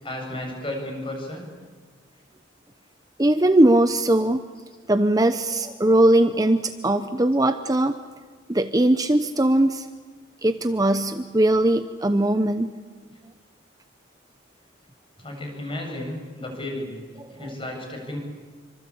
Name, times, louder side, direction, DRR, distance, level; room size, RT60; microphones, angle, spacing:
voice 1, 0.0-1.5 15.2-16.9 17.4-18.2, left 1 dB, 25° left, 2 dB, 7.7 m, -33 dB
voice 2, 3.2-4.4 4.9-8.0 8.5-9.9 10.4-12.7 17.2-17.3, right 1 dB, 20° right, 9 dB, 0.8 m, -20 dB
27.5 x 25.0 x 8.6 m, 1.5 s
head